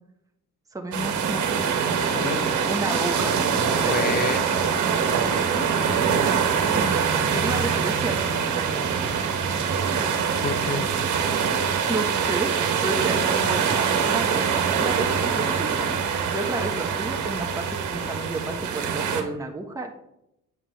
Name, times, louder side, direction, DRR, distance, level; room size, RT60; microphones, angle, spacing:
voice 1, 0.7-1.8 2.7-3.4 3.8-4.0 6.6-6.9 7.3-8.6 11.7-15.9 16.2-19.9, right 2 dB, 10° right, 2 dB, 1.2 m, -31 dB
sound 1, 0.9-19.2, right 6 dB, 75° right, 1.5 m, -24 dB
voice 2, 3.9-4.5 10.4-10.9, left 4 dB, 30° left, 6 dB, 1.1 m, -28 dB
8.4 x 5.8 x 4.1 m, 0.80 s
cardioid pair, 90°, 30 cm